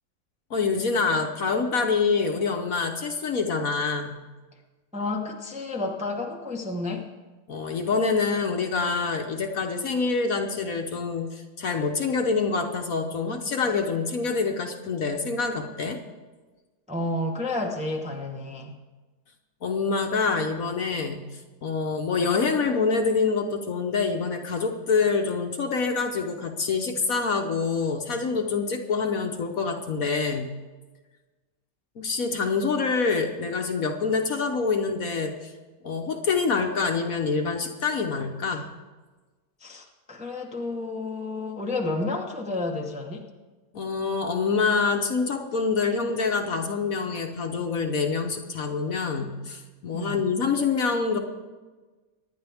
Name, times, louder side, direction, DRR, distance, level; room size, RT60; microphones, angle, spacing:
voice 1, 0.5-4.2 7.5-16.0 19.6-30.5 32.0-35.5 35.8-38.8 43.7-51.2, left 4 dB, 55° left, 4 dB, 1.3 m, -26 dB
voice 2, 4.9-7.1 16.9-18.8 39.6-43.3 49.9-50.2, left 2 dB, 5° right, 1 dB, 0.8 m, -31 dB
25.0 x 10.5 x 3.5 m, 1.3 s
omnidirectional pair, 2.0 m